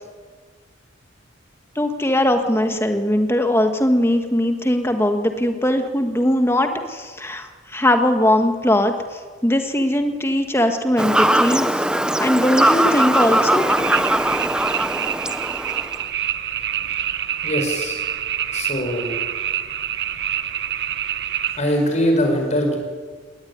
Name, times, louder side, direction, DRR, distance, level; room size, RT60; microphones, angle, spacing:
voice 1, 1.7-11.9 12.2-13.6, left 1 dB, 10° left, 6 dB, 1.7 m, -20 dB
Fowl / Bird vocalization bird call bird song, 11.0-16.0, right 1 dB, 5° right, 0.8 m, -20 dB
sound 1, 12.8-21.6, right 10 dB, 55° right, 1.0 m, -27 dB
voice 2, 17.1-18.0 18.5-19.2 21.5-22.8, equal, 35° left, 3 dB, 5.1 m, -22 dB
20.5 x 18.5 x 9.7 m, 1.5 s
head